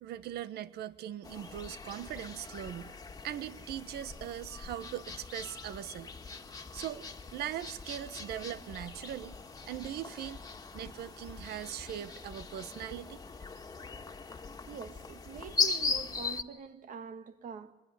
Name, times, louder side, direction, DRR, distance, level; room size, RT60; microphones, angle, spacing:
voice 1, 0.0-3.0 3.2-6.1 6.7-7.0 7.3-9.3 9.7-10.4 10.7-13.2, right 11 dB, 70° right, 1.3 m, -40 dB
sound 1, 1.2-16.4, left 4 dB, 20° left, 2.0 m, -39 dB
voice 2, 14.7-17.7, right 6 dB, 50° right, 2.1 m, -44 dB
25.5 x 21.5 x 9.8 m
cardioid pair, 110°, 17 cm